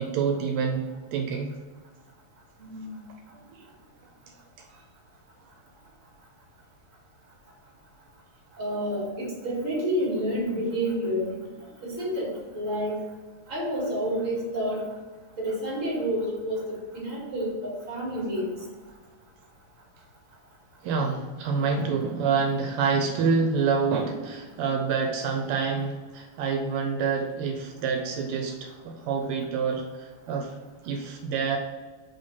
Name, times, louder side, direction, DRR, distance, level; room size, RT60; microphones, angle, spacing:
voice 1, 0.0-1.5 3.4-3.7 20.8-30.5 30.8-31.6, right 5 dB, 85° right, 3 dB, 1.6 m, -27 dB
voice 2, 2.6-3.0 8.6-11.3 11.8-12.9 13.5-14.8 15.4-18.5, equal, 35° right, -5 dB, 2.3 m, -29 dB
5.5 x 3.4 x 5.3 m, 1.4 s
omnidirectional pair, 2.4 m